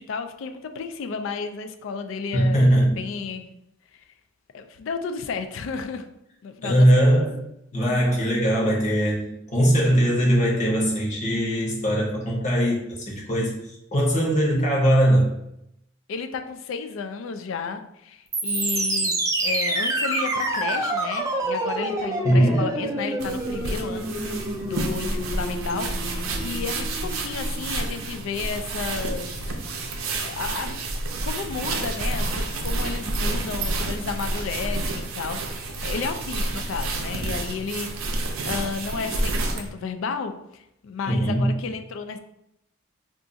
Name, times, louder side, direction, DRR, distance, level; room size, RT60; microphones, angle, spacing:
voice 1, 0.0-3.5 3.9-4.0 4.5-6.1 6.4-7.1 16.1-29.3 30.2-30.8 31.2-42.2, left 5 dB, 65° left, 8 dB, 0.3 m, -32 dB
voice 2, 2.3-3.0 6.6-7.4 7.7-12.8 13.1-13.6 13.9-15.3 22.2-22.7 41.1-41.6, equal, 35° left, -3 dB, 0.9 m, -20 dB
sound 1, 18.3-28.3, right 2 dB, 15° right, 0.4 m, -28 dB
sound 2, 23.2-39.7, right 2 dB, 90° right, 0.5 m, -29 dB
2.5 x 2.4 x 3.8 m, 0.81 s
head